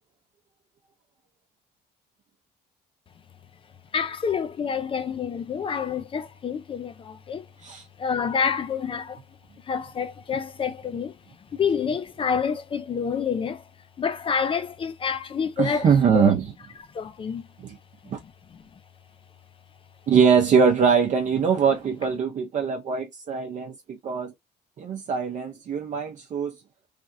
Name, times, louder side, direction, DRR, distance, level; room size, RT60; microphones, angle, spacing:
voice 1, 3.9-7.5 8.0-9.2 9.6-11.2 11.5-13.6 14.0-16.3 16.9-17.4 18.5-18.6, left 6 dB, 30° left, 0.4 m, -28 dB
voice 2, 15.6-16.5 17.6-17.8 18.1-18.2 20.1-24.3 24.8-26.5, right 6 dB, 45° right, 0.6 m, -22 dB
3.3 x 2.5 x 2.5 m
cardioid pair, 110°, 17 cm